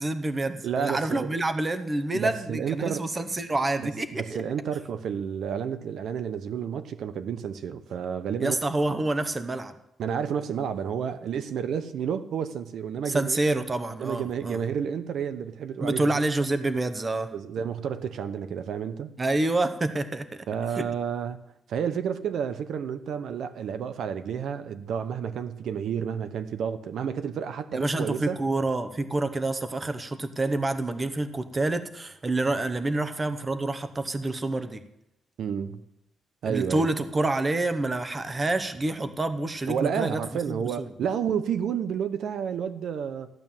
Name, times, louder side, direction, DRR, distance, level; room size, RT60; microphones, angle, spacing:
voice 1, 0.0-4.4 8.4-9.7 13.1-14.7 15.8-17.3 19.2-20.5 20.8-20.9 27.7-34.8 36.4-40.2 40.5-40.9, right 2 dB, 20° right, 0.9 m, -28 dB
voice 2, 0.6-1.3 2.1-3.1 3.8-8.6 10.0-13.4 14.0-16.2 17.3-19.1 20.5-21.4 21.7-28.4 35.4-35.8 36.4-36.8 39.7-43.3, right 7 dB, 70° right, 0.9 m, -30 dB
15.0 x 11.0 x 7.4 m
wide cardioid pair, 165°, 0 cm